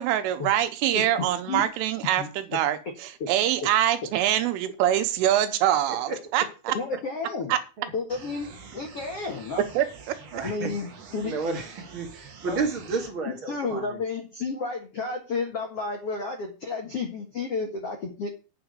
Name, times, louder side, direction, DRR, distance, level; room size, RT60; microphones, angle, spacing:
voice 1, 0.0-6.8 7.5-7.6 9.8-10.2, right 12 dB, 85° right, 10 dB, 3.6 m, -24 dB
voice 2, 0.9-1.6 2.2-2.3 3.2-3.3 6.7-7.5 7.9-8.5 8.7-9.7 10.4-11.3 12.5-12.6 13.5-18.3, left 4 dB, 85° left, 2 dB, 1.3 m, -31 dB
voice 3, 5.9-6.2 7.8-7.9 10.3-10.7 11.2-14.0, right 4 dB, 45° right, 2 dB, 1.8 m, -32 dB
sound 1, 8.1-13.1, right 5 dB, 65° right, 1.6 m, -46 dB
9.1 x 6.0 x 8.1 m, 0.33 s
omnidirectional pair, 5.7 m